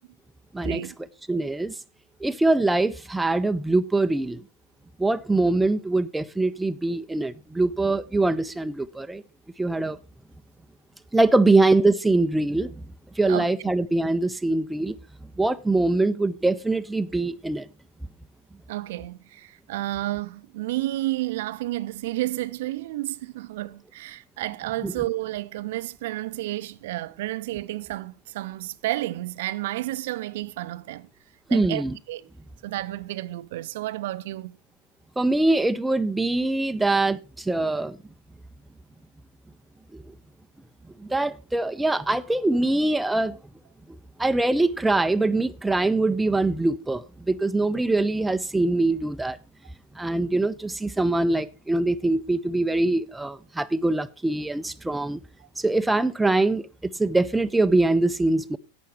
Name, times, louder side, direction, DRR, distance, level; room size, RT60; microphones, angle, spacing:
voice 1, 0.6-0.9 11.4-11.5 13.3-13.5 18.7-31.1 31.5-32.3 32.6-34.6, right 16 dB, 55° right, 0.5 m, -31 dB
voice 2, 1.3-1.7 2.2-4.4 5.0-9.2 9.6-10.0 11.1-12.8 13.2-14.9 15.4-17.7 24.8-24.9 31.5-32.0 35.2-38.0 39.9-40.0 41.0-43.4 44.2-49.4 50.0-55.2 55.6-58.6, right 2 dB, 5° right, 0.5 m, -23 dB
11.5 x 8.4 x 4.5 m
figure-of-eight pair, 90°, 0 cm